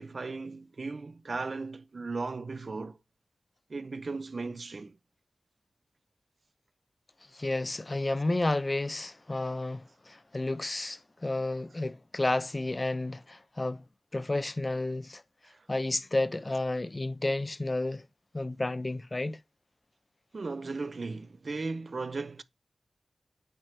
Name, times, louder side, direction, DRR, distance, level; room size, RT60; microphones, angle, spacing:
voice 1, 0.0-3.0 3.7-5.0 15.4-15.7 20.3-22.4, right 3 dB, 50° right, 0.4 m, -36 dB
voice 2, 7.3-13.8 14.1-15.2 15.7-18.0 18.3-19.4, left 2 dB, 25° left, 0.4 m, -31 dB
8.8 x 3.2 x 4.4 m
wide cardioid pair, 115°, 0 cm